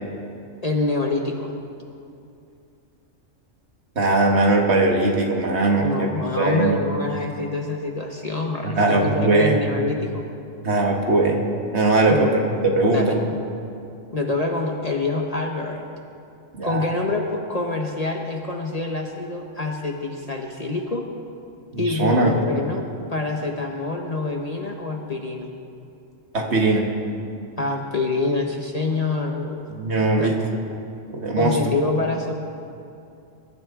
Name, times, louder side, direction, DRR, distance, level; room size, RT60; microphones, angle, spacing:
voice 1, 0.6-1.5 5.8-10.3 12.1-12.3 12.8-13.3 14.1-15.9 16.6-21.1 21.8-25.5 27.6-29.6 30.1-30.3 31.4-32.3, left 3 dB, 35° left, 1 dB, 1.0 m, -26 dB
voice 2, 4.0-6.1 6.4-6.8 8.8-9.6 10.6-11.5 11.7-12.3 12.6-13.1 16.5-16.9 21.7-22.4 26.3-26.9 29.7-30.4 31.1-31.6, right 2 dB, 55° right, 1 dB, 1.7 m, -20 dB
22.0 x 12.5 x 3.7 m, 2.6 s
omnidirectional pair, 1.3 m